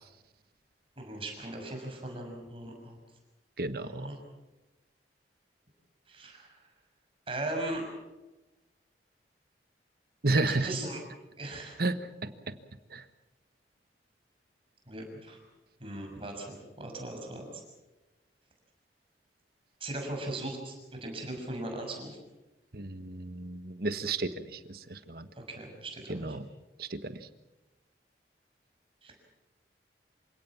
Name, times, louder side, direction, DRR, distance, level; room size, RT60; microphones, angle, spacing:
voice 1, 1.0-3.0 3.7-4.2 6.1-6.6 7.3-7.8 10.4-11.0 11.4-11.8 14.9-15.4 15.8-17.4 19.8-22.2 25.3-26.4 29.0-29.2, right 2 dB, 30° right, 2 dB, 6.3 m, -38 dB
voice 2, 3.6-4.1 10.2-10.7 11.8-12.0 12.5-12.6 12.9-13.0 22.7-25.2 26.1-26.4 26.8-27.2, right 2 dB, 55° right, 11 dB, 1.4 m, -32 dB
27.5 x 17.5 x 7.3 m, 1.1 s
head